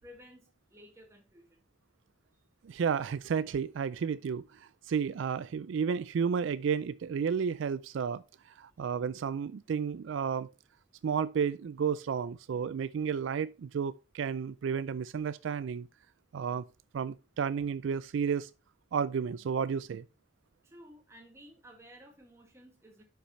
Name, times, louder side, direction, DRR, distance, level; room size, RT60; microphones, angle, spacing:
voice 1, 0.0-1.6 20.6-23.0, equal, 15° right, 1.8 m, -54 dB
voice 2, 2.6-10.5 11.0-15.9 16.3-16.6 16.9-18.5 18.9-20.0, right 6 dB, 70° right, 0.3 m, -32 dB
9.8 x 5.8 x 3.1 m
head